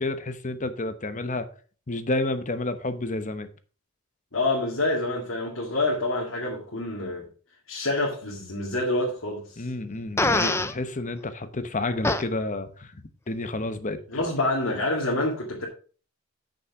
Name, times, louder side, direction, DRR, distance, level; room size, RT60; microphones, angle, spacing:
voice 1, 0.0-1.5 1.9-3.5 9.6-12.9 13.3-14.2, left 2 dB, 40° left, 0.9 m, -30 dB
voice 2, 4.3-7.3 7.7-9.7 14.1-15.7, left 2 dB, 70° left, 2.1 m, -27 dB
Fart, 10.2-10.7 12.0-12.2, left 2 dB, 15° left, 0.6 m, -23 dB
8.4 x 6.6 x 4.7 m
head